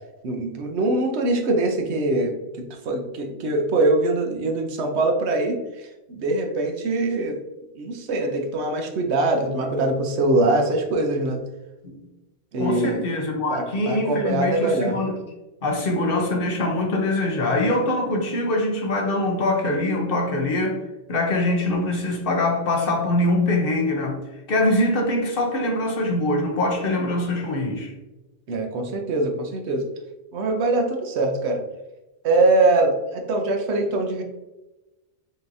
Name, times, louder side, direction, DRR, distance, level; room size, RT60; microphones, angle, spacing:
voice 1, 0.2-2.3 2.8-5.6 6.1-7.4 7.8-11.4 12.5-13.0 13.5-15.0 28.5-29.8 30.3-31.6 32.2-34.2, right 2 dB, 65° right, 3 dB, 1.0 m, -22 dB
voice 2, 12.6-15.2 15.6-20.8 21.1-24.2 24.5-27.9, left 1 dB, 50° left, 1 dB, 1.0 m, -23 dB
5.3 x 2.9 x 2.6 m, 1.1 s
omnidirectional pair, 1.2 m